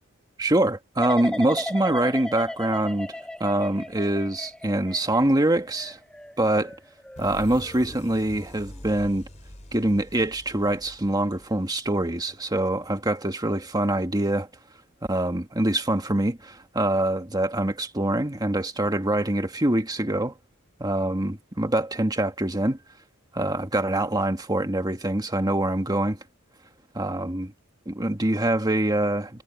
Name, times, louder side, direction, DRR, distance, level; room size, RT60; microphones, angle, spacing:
voice 1, 0.4-6.0 6.4-6.7 7.2-9.3 9.7-14.5 15.1-20.3 20.8-22.8 23.3-26.2 26.9-27.5 27.9-29.4, right 1 dB, 20° right, 1.9 m, -24 dB
sound 1, 1.0-7.9 8.4-8.8, left 1 dB, 5° left, 1.4 m, -37 dB
sound 2, 7.2-12.7, left 1 dB, 35° left, 3.2 m, -44 dB
head